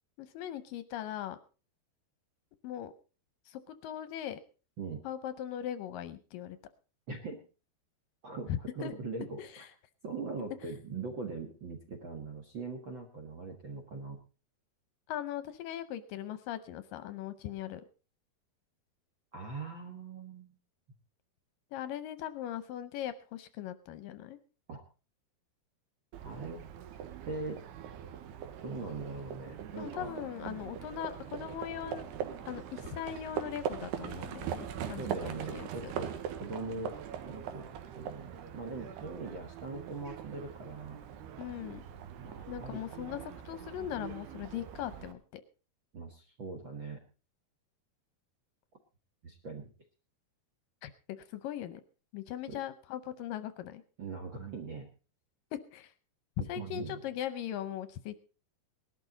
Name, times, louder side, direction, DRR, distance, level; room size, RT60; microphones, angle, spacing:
voice 1, 0.2-1.4 2.6-2.9 3.5-4.4 5.0-6.6 8.5-8.9 9.4-9.7 10.6-10.7 15.1-17.8 21.7-24.4 29.8-32.1 32.5-35.9 41.4-41.8 42.5-43.2 43.5-45.4 50.8-51.8 52.1-53.8 55.5-55.9 56.5-58.2, left 11 dB, 75° left, 13 dB, 2.2 m, -39 dB
voice 2, 7.1-7.4 8.2-9.7 10.0-14.2 19.3-20.5 24.7-24.8 26.2-26.6 27.2-27.6 28.6-30.1 35.0-37.7 37.9-41.0 42.2-42.8 45.9-47.0 49.2-49.7 52.5-52.6 54.0-54.9 56.4-57.0, right 4 dB, 60° right, 6 dB, 1.2 m, -41 dB
Livestock farm animals working animals, 26.1-45.1, right 9 dB, 85° right, 3.3 m, -42 dB
19.5 x 12.0 x 3.9 m, 0.34 s
omnidirectional pair, 4.6 m